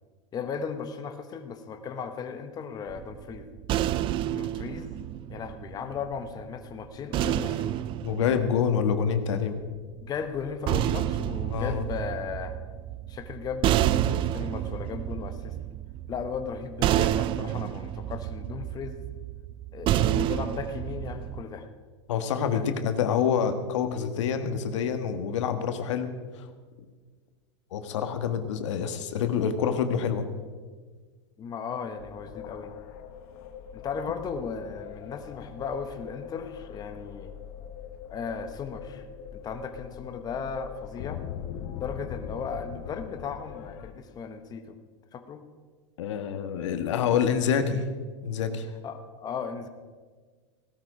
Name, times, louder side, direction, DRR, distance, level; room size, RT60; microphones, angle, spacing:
voice 1, 0.3-3.5 4.3-4.9 5.3-7.9 10.0-12.6 13.1-15.6 16.1-19.1 19.7-21.7 22.5-22.8 31.4-32.7 33.7-37.3 38.1-39.1 39.3-41.2 41.8-44.8 45.1-45.5 48.8-49.7, left 6 dB, 25° left, 7 dB, 1.1 m, -36 dB
sound 1, 2.9-6.2 7.1-9.4 10.3-21.4, right 12 dB, 35° right, 0.5 m, -29 dB
voice 2, 8.0-9.6 11.5-11.8 22.1-26.1 26.4-26.5 27.7-30.2 46.0-47.9 48.2-48.7, left 7 dB, 80° left, 8 dB, 1.5 m, -27 dB
sound 2, 32.0-43.9, left 8 dB, 55° left, 1.3 m, -42 dB
17.0 x 12.5 x 5.0 m, 1.5 s
supercardioid pair, 135°, 15 cm